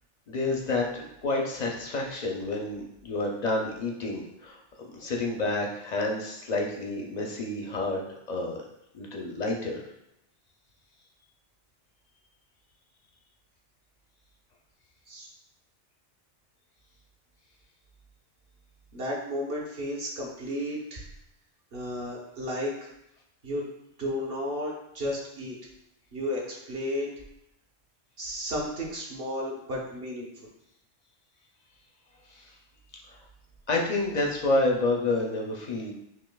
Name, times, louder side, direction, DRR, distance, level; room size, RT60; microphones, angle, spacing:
voice 1, 0.3-4.6 4.9-8.0 8.3-8.6 8.9-9.8 32.3-32.5 33.1-33.2 33.7-35.9, left 2 dB, 55° left, 0 dB, 0.5 m, -29 dB
voice 2, 18.9-21.1 21.7-22.9 23.4-23.7 24.0-25.6 26.1-27.1 28.2-30.5, equal, 55° right, -3 dB, 1.1 m, -33 dB
5.9 x 2.6 x 2.2 m, 0.81 s
omnidirectional pair, 1.2 m